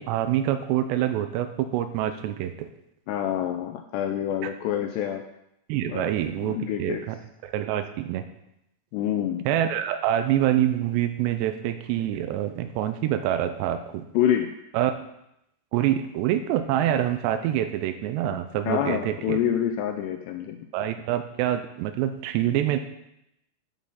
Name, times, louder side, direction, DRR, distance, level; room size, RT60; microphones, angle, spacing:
voice 1, 0.0-2.7 4.4-4.5 5.7-7.2 7.4-8.2 9.5-14.1 14.7-14.9 15.7-19.4 20.7-22.8, right 11 dB, 85° right, 9 dB, 2.5 m, -26 dB
voice 2, 3.1-5.2 5.9-6.1 6.4-7.0 8.9-9.4 14.1-14.5 18.7-20.6, left 10 dB, 85° left, 5 dB, 2.4 m, -27 dB
11.5 x 7.5 x 5.5 m, 0.82 s
omnidirectional pair, 5.6 m